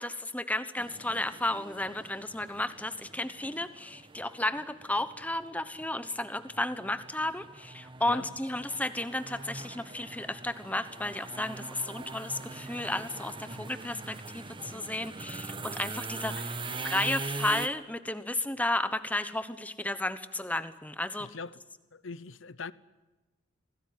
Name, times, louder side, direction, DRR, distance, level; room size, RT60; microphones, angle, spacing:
voice 1, 0.0-21.3, left 1 dB, 5° left, 1.1 m, -33 dB
sound 1, 0.8-17.7, right 3 dB, 25° right, 1.2 m, -42 dB
voice 2, 21.2-21.6 21.9-22.7, left 4 dB, 70° left, 0.9 m, -41 dB
26.0 x 18.0 x 9.5 m
head